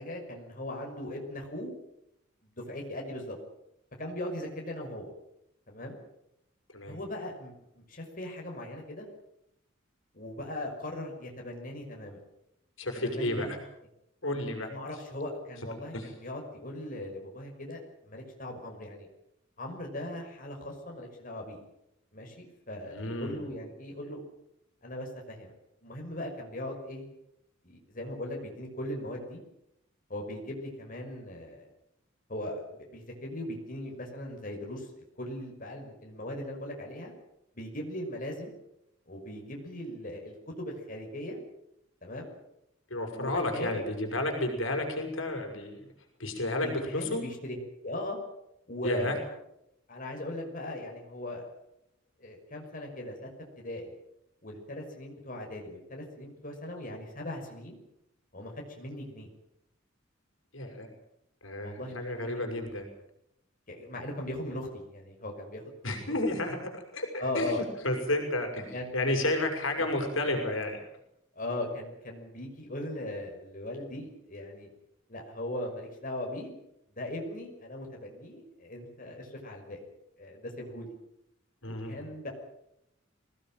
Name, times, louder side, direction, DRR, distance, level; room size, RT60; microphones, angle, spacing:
voice 1, 0.0-1.7 2.5-3.4 4.0-5.1 5.7-6.0 6.9-9.1 10.1-12.2 12.9-13.5 14.6-19.1 19.6-21.6 22.1-24.2 24.8-25.5 25.8-27.1 27.6-29.4 30.1-31.6 32.3-37.1 37.5-38.5 39.1-41.4 42.0-42.3 43.1-43.8 46.6-48.2 48.7-49.1 49.9-51.5 52.2-53.3 53.6-53.9 54.4-57.8 58.3-59.3 61.6-62.6 63.7-66.1 67.2-67.6 68.7-69.0 69.8-69.9 71.4-74.7 75.1-76.5 76.9-79.8 80.2-80.9 81.6-82.3, left 1 dB, 45° left, 1 dB, 5.9 m, -39 dB
voice 2, 12.8-13.5 14.2-14.7 15.9-16.0 22.9-23.4 42.9-45.9 46.2-47.2 48.8-49.2 60.5-60.9 61.4-62.9 65.8-70.8 81.6-82.0, left 1 dB, 85° left, 4 dB, 6.0 m, -31 dB
23.5 x 18.5 x 9.3 m, 0.82 s
head